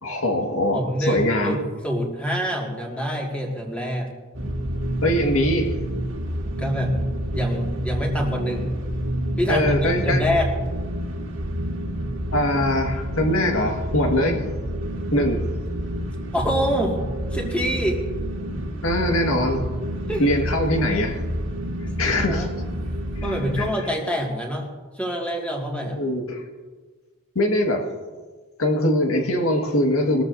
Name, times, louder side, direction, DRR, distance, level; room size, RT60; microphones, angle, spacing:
voice 1, 0.0-1.6 5.0-5.7 9.5-10.2 12.3-14.4 15.1-15.5 18.8-19.7 20.2-21.2 22.0-22.5 23.6-23.7 25.9-26.4 27.4-27.8 28.6-30.2, left 1 dB, 80° left, 3 dB, 1.8 m, -22 dB
voice 2, 0.7-4.1 6.6-7.0 7.3-8.7 9.4-10.5 16.3-17.0 17.3-18.0 20.1-20.3 22.1-22.5 23.2-24.7 24.9-26.0, equal, 5° left, -1 dB, 2.0 m, -26 dB
sound 1, 4.3-23.7, equal, 65° right, 1.9 m, -28 dB
21.0 x 13.5 x 2.7 m, 1.4 s
head